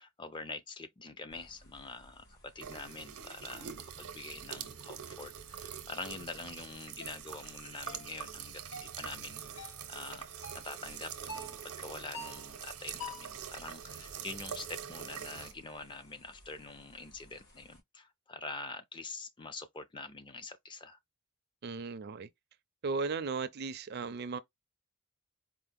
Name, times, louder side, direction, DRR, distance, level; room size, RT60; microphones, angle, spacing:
voice 1, 0.0-21.0, left 3 dB, 20° left, 0.4 m, -45 dB
sound 1, 1.3-17.8, equal, 80° left, 3.0 m, -61 dB
sound 2, 2.6-15.5, right 8 dB, 80° right, 0.8 m, -45 dB
sound 3, 7.0-7.2 7.9-8.1 8.7-9.0 9.6-9.8 10.4-10.7 11.3-11.6 12.1-12.5 13.0-13.4, left 2 dB, 60° left, 1.1 m, -45 dB
voice 2, 21.6-22.3 22.8-24.4, right 4 dB, 45° right, 0.4 m, -36 dB
4.6 x 2.0 x 3.4 m
head